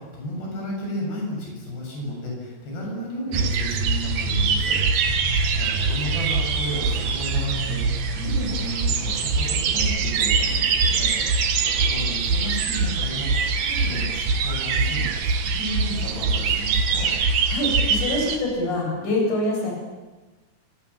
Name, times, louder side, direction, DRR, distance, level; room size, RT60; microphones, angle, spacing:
voice 1, 0.0-4.8 5.1-17.1, equal, 80° left, -1 dB, 9.7 m, -33 dB
sound 1, 3.3-18.4, right 4 dB, 65° right, 3.7 m, -23 dB
voice 2, 17.5-19.7, left 1 dB, 45° left, 0 dB, 9.5 m, -25 dB
27.5 x 27.0 x 7.3 m, 1.2 s
omnidirectional pair, 4.7 m